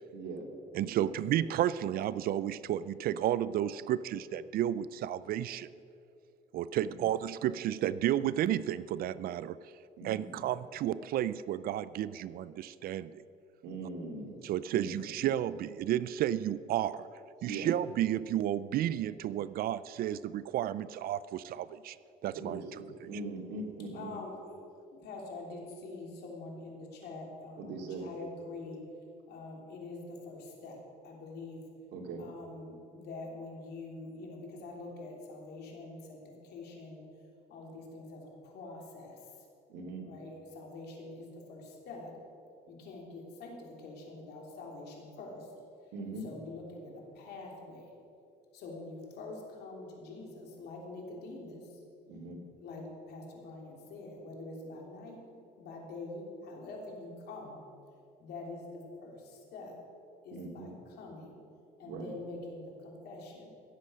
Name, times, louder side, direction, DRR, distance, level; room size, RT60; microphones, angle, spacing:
voice 1, 0.1-0.5 0.9-1.1 6.8-7.0 10.0-10.4 13.6-14.4 14.7-14.9 17.4-17.7 22.3-24.1 27.6-28.1 31.9-32.2 39.7-40.1 45.9-46.3 52.1-52.4 60.3-60.7 61.8-62.1, right 3 dB, 80° right, 1 dB, 2.6 m, -41 dB
voice 2, 0.7-5.7 6.5-9.6 10.0-13.2 14.4-17.1 17.4-22.0 22.2-22.6, right 11 dB, 60° right, 17 dB, 0.4 m, -32 dB
voice 3, 23.9-24.4 24.9-28.8 29.3-31.6 32.2-37.0 37.5-39.5 40.0-42.1 42.7-45.5 46.2-47.9 48.5-51.8 52.6-55.2 55.6-57.6 58.2-59.8 60.2-61.4 61.8-63.5, left 2 dB, 75° left, -1 dB, 3.2 m, -45 dB
16.5 x 7.8 x 6.3 m, 2.5 s
cardioid pair, 110°, 17 cm